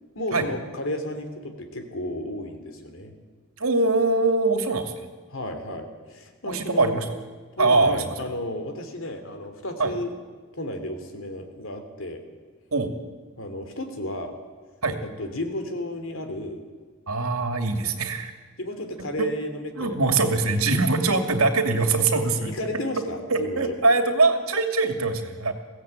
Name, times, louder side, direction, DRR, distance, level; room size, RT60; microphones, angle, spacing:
voice 1, 0.1-3.1 5.3-7.0 7.6-10.1 10.5-12.2 13.4-14.3 15.0-16.6 18.6-20.1 20.7-20.8 22.4-23.7, left 1 dB, 65° left, 7 dB, 3.2 m, -33 dB
voice 2, 3.6-5.1 6.5-7.1 7.6-8.1 9.8-9.9 12.7-12.9 14.8-15.0 17.1-18.3 19.2-19.3 19.8-22.5 23.3-25.5, right 3 dB, 85° right, 6 dB, 2.6 m, -22 dB
22.0 x 16.5 x 9.1 m, 1.4 s
head